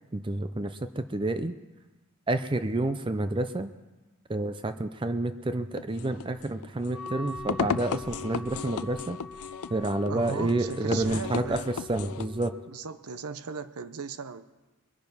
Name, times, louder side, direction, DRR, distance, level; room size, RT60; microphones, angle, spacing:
voice 1, 0.1-1.5 2.3-3.7 4.3-9.2 9.7-12.5, right 2 dB, 20° right, 10 dB, 0.5 m, -29 dB
sound 1, 5.8-12.5, left 6 dB, 80° left, 0.4 m, -36 dB
Wind instrument woodwind instrument, 6.9-12.8, left 3 dB, 5° right, 1.8 m, -43 dB
voice 2, 10.1-11.7 12.7-14.5, right 5 dB, 85° right, 12 dB, 0.7 m, -37 dB
22.0 x 9.1 x 5.5 m, 1.1 s
head